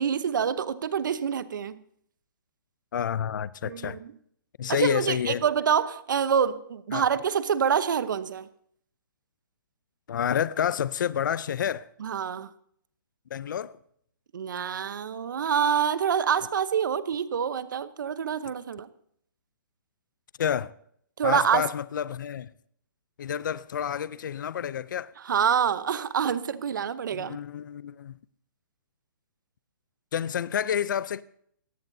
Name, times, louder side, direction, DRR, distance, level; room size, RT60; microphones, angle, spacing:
voice 1, 0.0-1.8 3.6-4.1 4.7-8.5 12.0-12.5 14.3-18.9 21.2-21.7 25.2-27.4, right 7 dB, 65° right, 0.9 m, -26 dB
voice 2, 2.9-4.0 4.6-5.4 6.9-7.0 10.1-11.9 13.3-13.7 20.4-20.7 21.2-22.5 23.2-25.1 27.2-28.1 30.1-31.2, left 9 dB, 65° left, 0.5 m, -29 dB
20.0 x 15.5 x 2.7 m
hypercardioid pair, 160°, 11 cm